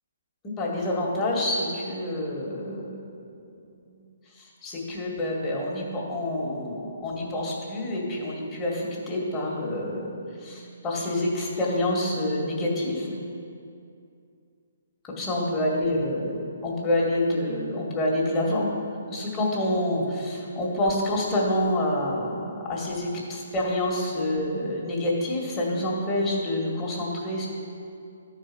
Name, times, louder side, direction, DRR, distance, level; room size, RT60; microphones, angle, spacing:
voice 1, 0.4-3.0 4.4-10.1 10.4-13.2 15.0-18.7 19.1-27.5, left 1 dB, 20° left, -4 dB, 2.1 m, -27 dB
12.5 x 4.8 x 6.1 m, 2.4 s
hypercardioid pair, 150°, 0 cm